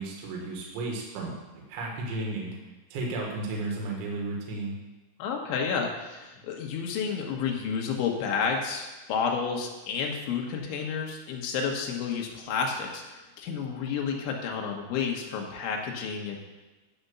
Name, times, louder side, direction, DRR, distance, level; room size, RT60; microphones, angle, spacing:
voice 1, 0.0-1.4 1.7-2.6 2.9-4.7, right 2 dB, 70° right, -2 dB, 3.8 m, -33 dB
voice 2, 5.2-16.4, left 6 dB, 75° left, 1 dB, 3.3 m, -31 dB
10.5 x 5.1 x 6.9 m, 1.2 s
omnidirectional pair, 5.9 m